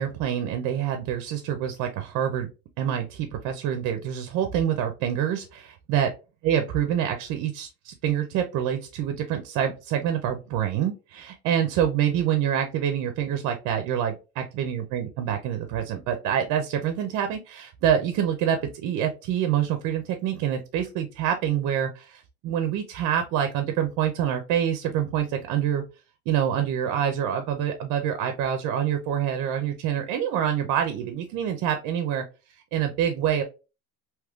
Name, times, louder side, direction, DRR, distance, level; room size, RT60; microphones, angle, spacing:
voice 1, 0.0-2.5 2.8-6.1 6.4-25.8 26.3-32.2 32.7-33.4, right 9 dB, 70° right, 6 dB, 0.6 m, -26 dB
3.5 x 2.8 x 2.3 m, 0.30 s
cardioid pair, 145°, 30 cm